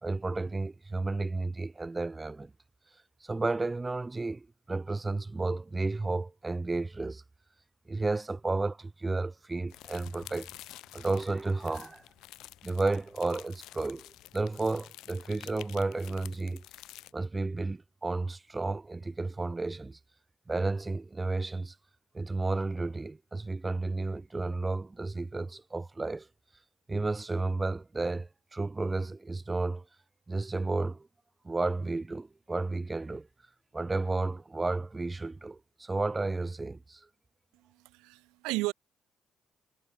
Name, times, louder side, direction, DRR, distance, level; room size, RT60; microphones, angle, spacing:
voice 1, 0.0-2.5 3.2-7.2 7.9-10.5 10.9-12.0 12.6-16.6 17.1-20.0 20.5-21.7 22.1-26.3 26.9-29.9 30.3-31.1 31.4-33.3 33.7-37.1, right 3 dB, 25° right, 1.0 m, -32 dB
sound 1, 9.7-17.1, left 16 dB, 80° left, 2.9 m, -50 dB
voice 2, 37.5-38.7, right 22 dB, 90° right, 0.4 m, -34 dB
supercardioid pair, 65°, 0 cm